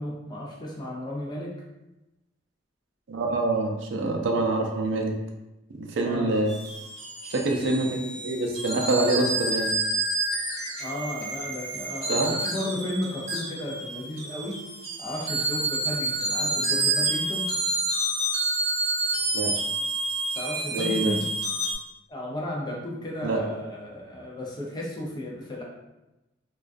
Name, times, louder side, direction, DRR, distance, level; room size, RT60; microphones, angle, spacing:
voice 1, 0.0-1.5 6.0-6.4 10.8-14.6 15.0-17.5 20.3-21.3 22.1-25.6, left 1 dB, 25° left, -2 dB, 0.4 m, -34 dB
voice 2, 3.1-5.1 5.8-6.5 7.2-9.7 12.1-12.3 19.3-19.5 20.7-21.1 23.2-23.4, right 2 dB, 80° right, 2 dB, 0.4 m, -26 dB
sound 1, 6.5-21.7, right 2 dB, 35° right, 0.9 m, -29 dB
2.3 x 2.2 x 2.4 m, 0.98 s
head